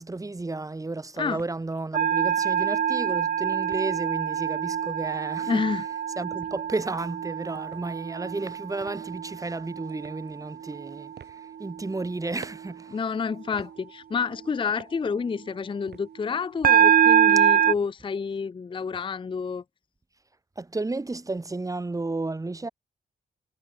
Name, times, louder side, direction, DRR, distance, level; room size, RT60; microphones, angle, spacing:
voice 1, 0.0-5.6 6.2-13.0 20.6-22.7, right 2 dB, 20° right, 2.7 m, -33 dB
sound 1, 0.7-17.6, right 8 dB, 70° right, 3.3 m, -55 dB
sound 2, 1.9-10.2 10.7-11.0 16.6-17.7, right 9 dB, 55° right, 0.6 m, -24 dB
voice 2, 5.5-5.8 12.9-19.6, left 5 dB, 30° left, 0.6 m, -29 dB
wide cardioid pair, 145°, 18 cm